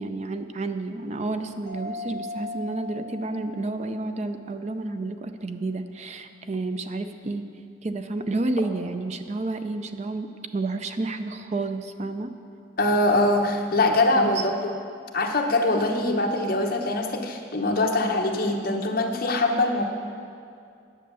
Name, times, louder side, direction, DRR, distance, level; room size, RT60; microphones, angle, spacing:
voice 1, 0.0-7.4 7.8-10.3 10.5-12.3 14.2-14.4, right 2 dB, 35° right, 8 dB, 0.5 m, -30 dB
Mallet percussion, 1.7-4.2, left 3 dB, 15° left, 2.0 m, -38 dB
voice 2, 12.8-14.7 15.1-19.8, left 2 dB, 50° left, 2 dB, 1.0 m, -23 dB
10.0 x 8.0 x 6.9 m, 2.4 s
head